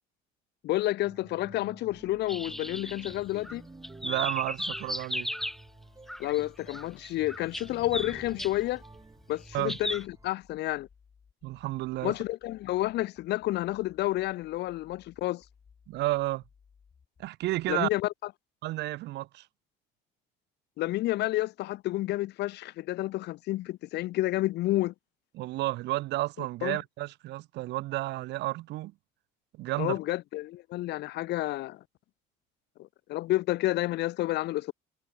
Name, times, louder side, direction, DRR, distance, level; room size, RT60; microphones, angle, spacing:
voice 1, 0.6-3.6 6.2-8.8 9.3-10.9 12.0-15.4 17.7-18.1 20.8-24.9 26.6-26.8 29.8-31.8 32.8-34.7, left 16 dB, 65° left, 0.5 m, -30 dB
sound 1, 1.0-10.3, right 3 dB, 20° right, 5.9 m, -51 dB
sound 2, 1.9-17.9, left 6 dB, 35° left, 6.7 m, -61 dB
sound 3, 2.3-3.5 3.8-5.6 6.1-6.4 6.7-8.5 9.7-10.0, equal, ahead, 0.5 m, -35 dB
voice 2, 4.0-5.3 9.5-9.8 11.4-12.1 15.9-16.4 17.2-17.9 18.6-19.5 25.3-28.9 29.5-30.0, right 17 dB, 70° right, 0.6 m, -31 dB
supercardioid pair, 85°, 19 cm